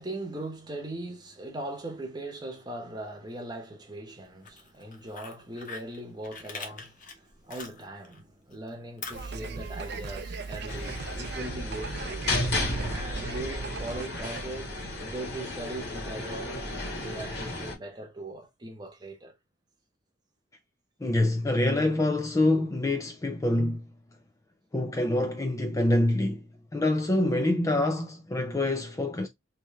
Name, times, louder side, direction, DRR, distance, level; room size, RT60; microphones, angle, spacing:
voice 1, 0.0-12.3 12.9-19.3, right 1 dB, 20° right, 0.9 m, -40 dB
Fire, 4.3-8.2 8.5-11.3, left 4 dB, 40° left, 0.8 m, -45 dB
sound 1, 9.1-14.4, right 4 dB, 55° right, 0.5 m, -38 dB
Cruiseship - inside crew area main hallway, 10.7-17.7, left 1 dB, 60° left, 1.8 m, -33 dB
voice 2, 21.0-23.8 24.7-26.5 26.7-29.3, left 1 dB, 15° left, 0.3 m, -26 dB
3.2 x 3.0 x 3.3 m
head